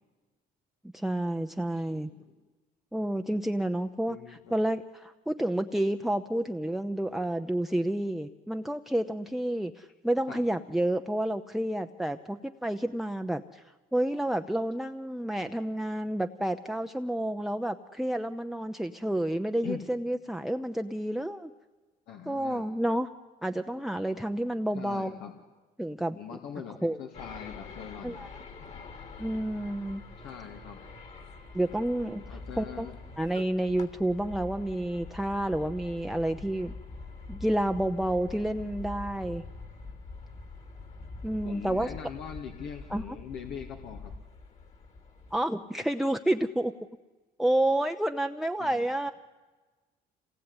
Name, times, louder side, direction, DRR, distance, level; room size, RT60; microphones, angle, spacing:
voice 1, 0.9-2.1 2.9-13.6 13.9-21.5 22.3-23.1 23.4-25.1 25.8-26.2 26.8-27.0 28.0-28.3 29.2-30.0 31.5-32.9 33.2-36.7 37.3-39.4 41.2-41.9 42.9-43.2 45.3-46.7 47.4-49.1, right 1 dB, ahead, 8 dB, 0.8 m, -30 dB
voice 2, 1.7-2.3 4.1-4.5 10.3-10.4 19.6-19.8 22.1-22.6 24.7-25.3 26.1-28.2 30.2-30.8 32.2-32.9 41.4-44.1 48.6-49.1, left 8 dB, 80° left, 2 dB, 2.6 m, -42 dB
sound 1, 27.1-45.4, left 3 dB, 40° left, 3.2 m, -45 dB
27.0 x 19.5 x 9.9 m, 1.3 s
cardioid pair, 110°, 17 cm